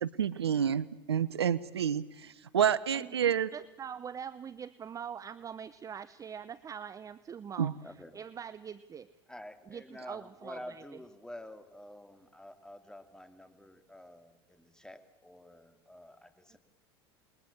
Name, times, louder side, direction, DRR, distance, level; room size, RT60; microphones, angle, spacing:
voice 1, 0.0-3.5 7.6-7.7, right 8 dB, 90° right, 20 dB, 0.8 m, -29 dB
voice 2, 2.9-9.1 9.7-10.8 16.5-16.6, right 7 dB, 25° right, 17 dB, 0.8 m, -44 dB
voice 3, 7.8-8.1 9.3-16.6, left 1 dB, 5° left, 8 dB, 2.8 m, -49 dB
28.5 x 21.5 x 7.2 m, 1.0 s
hypercardioid pair, 85°, 13 cm